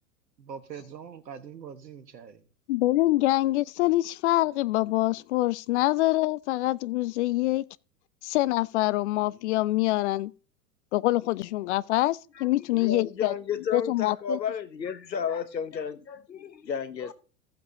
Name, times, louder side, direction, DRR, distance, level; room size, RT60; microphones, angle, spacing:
voice 1, 0.4-2.5, right 7 dB, 75° right, 1.5 m, -43 dB
voice 2, 2.7-7.6 8.2-10.3 10.9-13.3 13.7-14.4, left 17 dB, 45° left, 0.5 m, -25 dB
voice 3, 12.4-17.1, left 7 dB, 85° left, 1.1 m, -32 dB
15.0 x 7.9 x 2.8 m
figure-of-eight pair, 95°, 49 cm